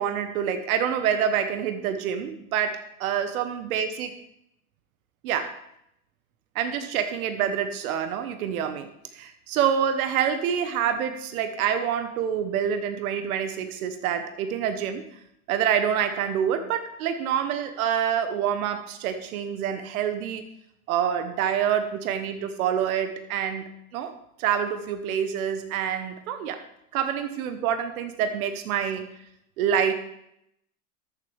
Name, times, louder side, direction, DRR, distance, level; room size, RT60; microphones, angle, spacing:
voice 1, 0.0-4.2 5.2-5.6 6.5-8.9 9.1-15.0 15.5-20.4 20.9-24.1 24.4-26.6 26.9-29.0 29.6-29.9, right 8 dB, 80° right, 8 dB, 1.1 m, -27 dB
13.5 x 7.5 x 3.3 m, 0.76 s
supercardioid pair, 115°, 42 cm